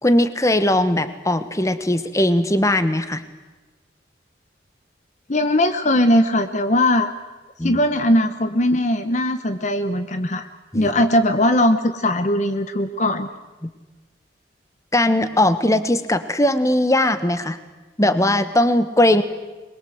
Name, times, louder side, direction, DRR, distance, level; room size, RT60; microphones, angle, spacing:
voice 1, 0.0-3.2 7.6-7.8 10.7-11.0 13.6-13.7 14.9-17.6 18.0-19.2, left 1 dB, 15° left, 11 dB, 1.2 m, -19 dB
voice 2, 5.3-7.1 7.6-10.5 10.7-13.3, left 1 dB, 40° left, 9 dB, 0.9 m, -19 dB
24.5 x 22.0 x 7.9 m, 1.2 s
head